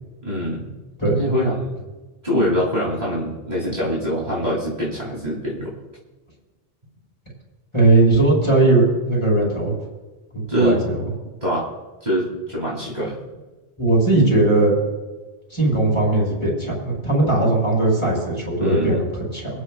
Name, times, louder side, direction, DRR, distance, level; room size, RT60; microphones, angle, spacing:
voice 1, 0.2-0.7 1.2-1.8 2.2-5.7 10.5-10.8 11.4-11.7 12.0-13.2 18.6-19.0, equal, 40° right, -6 dB, 3.3 m, -24 dB
voice 2, 7.7-9.7 10.3-11.0 13.8-14.7 15.5-19.5, right 2 dB, 30° left, -5 dB, 5.4 m, -18 dB
28.5 x 9.6 x 2.5 m, 1.2 s
omnidirectional pair, 1.1 m